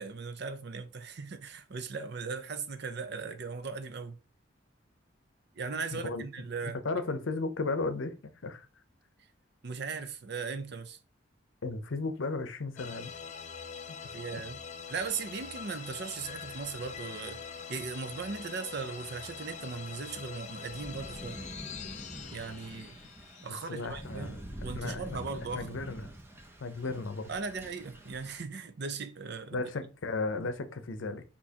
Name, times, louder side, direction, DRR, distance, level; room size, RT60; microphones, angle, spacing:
voice 1, 0.0-4.2 5.6-6.8 9.6-11.0 14.1-14.6 14.9-17.4 17.7-21.4 22.3-23.0 23.4-25.7 27.3-29.6, right 4 dB, 60° right, 0.6 m, -38 dB
voice 2, 5.9-6.2 6.8-8.2 8.4-8.7 11.6-13.1 13.9-14.0 14.3-14.4 23.7-24.4 24.7-25.0 25.5-26.1 26.6-27.3 29.5-31.2, left 3 dB, 80° left, 0.6 m, -34 dB
sound 1, 12.8-24.2, left 6 dB, 40° left, 0.4 m, -44 dB
Thunder / Rain, 14.9-28.5, right 1 dB, 15° right, 0.7 m, -48 dB
6.3 x 2.9 x 2.8 m
head